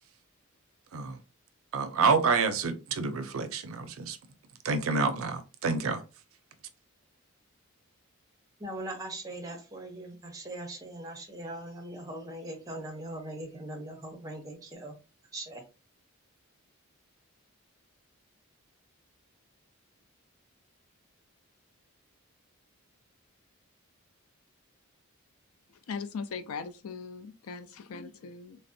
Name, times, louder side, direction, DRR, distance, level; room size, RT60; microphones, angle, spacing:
voice 1, 1.7-4.2 4.6-6.0, right 4 dB, 70° right, 0.4 m, -28 dB
voice 2, 8.6-15.0 15.3-15.6, right 1 dB, 15° right, 0.6 m, -40 dB
voice 3, 25.9-28.6, left 5 dB, 75° left, 0.4 m, -39 dB
3.4 x 2.0 x 2.6 m
head